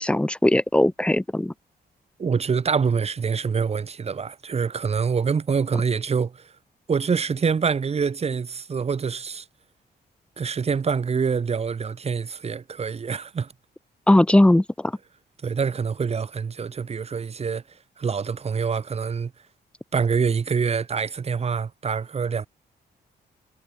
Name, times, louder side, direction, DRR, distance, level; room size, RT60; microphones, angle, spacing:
voice 1, 0.0-1.5 14.1-14.6, left 1 dB, 5° left, 1.0 m, -18 dB
voice 2, 2.2-6.5 6.9-9.5 10.4-13.5 15.4-17.6 18.0-19.3 19.9-22.5, right 6 dB, 35° right, 3.6 m, -25 dB
cardioid pair, 135°, 17 cm